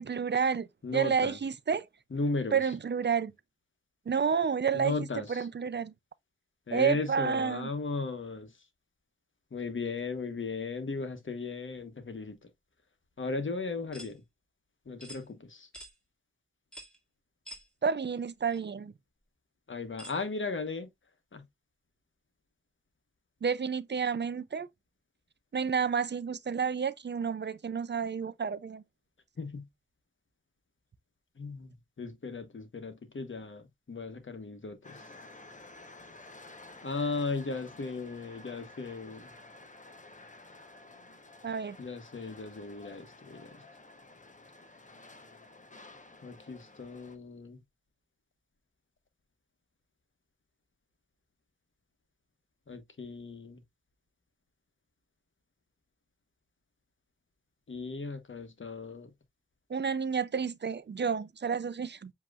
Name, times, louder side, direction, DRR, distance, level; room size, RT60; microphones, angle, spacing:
voice 1, 0.0-1.8 2.5-3.3 4.1-4.9 5.3-5.9 6.7-7.7 17.8-18.9 23.4-24.7 25.5-28.8 41.4-41.8 59.7-62.1, right 6 dB, 55° right, 0.5 m, -30 dB
voice 2, 0.8-1.4 2.1-2.7 4.7-5.5 6.7-8.5 9.5-12.4 13.2-14.2 14.9-15.7 19.7-20.9 21.3-21.4 29.4-29.6 31.4-35.0 36.8-39.3 41.8-43.6 46.2-47.6 52.7-53.6 57.7-59.1, left 3 dB, 65° left, 1.1 m, -36 dB
sound 1, 13.9-14.1 15.0-15.2 15.7-15.9 16.7-17.0 17.5-17.7 18.5-18.6 20.0-20.2, equal, 5° left, 2.1 m, -47 dB
sound 2, 34.8-47.2, left 2 dB, 35° left, 1.0 m, -52 dB
7.4 x 2.9 x 2.4 m
cardioid pair, 45°, 21 cm